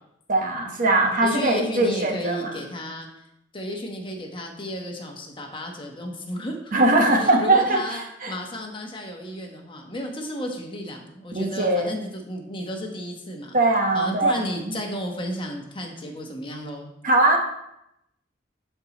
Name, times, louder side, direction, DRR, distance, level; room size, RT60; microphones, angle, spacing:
voice 1, 0.3-2.5 6.7-8.3 11.3-12.0 13.5-14.9 17.0-17.4, right 2 dB, 45° right, 2 dB, 1.2 m, -21 dB
voice 2, 1.2-3.3 3.5-6.7 7.2-8.0 8.3-13.6 13.9-16.9, left 1 dB, 30° left, 2 dB, 1.1 m, -33 dB
11.0 x 4.6 x 3.0 m, 0.81 s
head